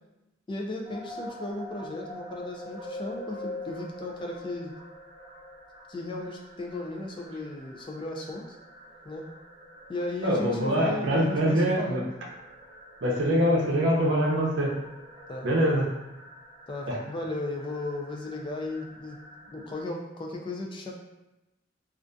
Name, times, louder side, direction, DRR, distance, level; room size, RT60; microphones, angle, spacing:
voice 1, 0.5-4.7 5.9-8.5 9.0-9.3 9.9-12.1 15.3-15.5 16.7-19.2 19.5-20.9, left 2 dB, 25° left, 1 dB, 0.3 m, -35 dB
sound 1, 0.8-19.8, left 1 dB, 30° right, 0.6 m, -45 dB
voice 2, 10.2-12.0 13.0-14.7 15.4-15.8 16.9-17.0, equal, 75° right, -2 dB, 0.6 m, -24 dB
2.5 x 2.4 x 2.2 m, 0.97 s
head